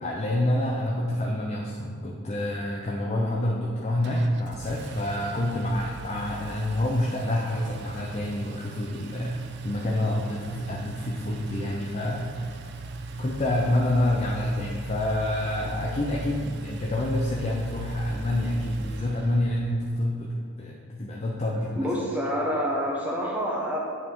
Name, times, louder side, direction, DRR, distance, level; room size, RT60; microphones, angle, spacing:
voice 1, 0.0-9.4 9.6-12.6 13.2-21.9, left 1 dB, 30° left, -2 dB, 0.5 m, -28 dB
Engine, 4.0-19.7, right 2 dB, 50° right, 0.4 m, -37 dB
voice 2, 21.8-23.8, equal, 5° right, -3 dB, 0.8 m, -27 dB
8.9 x 4.3 x 3.7 m, 2.1 s
head